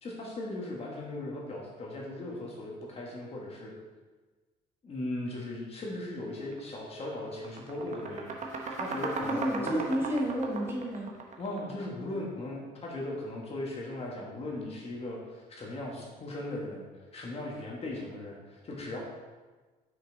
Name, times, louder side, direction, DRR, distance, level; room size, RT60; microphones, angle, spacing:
voice 1, 0.0-3.7 4.8-9.9 11.4-16.9 17.1-19.0, left 1 dB, 35° left, -2 dB, 1.6 m, -38 dB
sound 1, 6.5-6.7 7.0-12.0, right 4 dB, 45° right, 1.0 m, -37 dB
voice 2, 9.2-11.1, right 1 dB, 15° right, -3 dB, 1.6 m, -31 dB
6.1 x 5.7 x 3.9 m, 1.3 s
cardioid pair, 110°, 17 cm